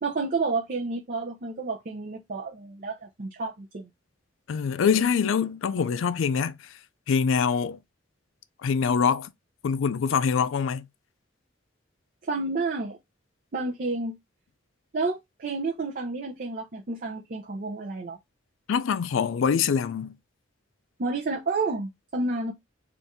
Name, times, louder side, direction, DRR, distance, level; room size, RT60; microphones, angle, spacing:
voice 1, 0.0-3.9 12.2-13.0 13.5-14.1 14.9-18.2 21.0-22.5, right 3 dB, 45° right, 0.6 m, -30 dB
voice 2, 4.5-6.6 7.1-7.8 8.6-9.3 9.6-10.9 18.7-20.2, left 6 dB, 75° left, 0.4 m, -24 dB
4.1 x 2.5 x 3.5 m
head